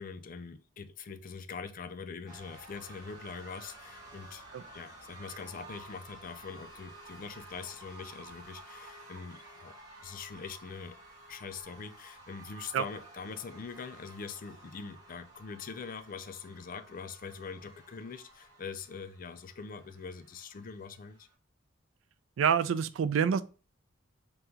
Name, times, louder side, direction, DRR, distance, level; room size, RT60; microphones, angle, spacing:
voice 1, 0.0-4.5 4.7-11.0 11.3-21.3, left 5 dB, 45° left, 0.4 m, -43 dB
sound 1, 2.3-21.3, right 2 dB, 20° right, 1.2 m, -52 dB
voice 2, 22.4-23.4, right 7 dB, 85° right, 0.3 m, -27 dB
3.7 x 2.3 x 4.3 m
head